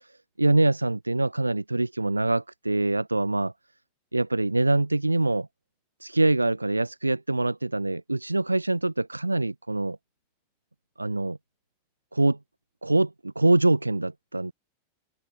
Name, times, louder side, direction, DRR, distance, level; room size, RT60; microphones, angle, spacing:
voice 1, 0.4-3.5 4.1-5.5 6.0-10.0 11.0-11.4 12.1-12.4 12.8-14.5, right 2 dB, 85° right, 0.4 m, -24 dB
open air
figure-of-eight pair, 90°, 0 cm